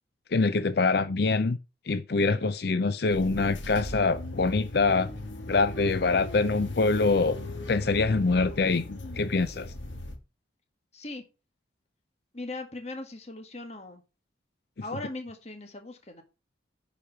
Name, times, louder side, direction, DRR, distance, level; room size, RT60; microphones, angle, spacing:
voice 1, 0.3-1.6 1.9-5.1 5.5-7.4 7.7-9.7, left 3 dB, 55° left, 0.5 m, -25 dB
sound 1, 3.1-10.2, left 1 dB, 80° left, 1.9 m, -38 dB
voice 2, 10.9-11.2 12.3-14.0 14.8-16.2, left 2 dB, 35° left, 1.7 m, -39 dB
10.0 x 5.0 x 6.0 m
head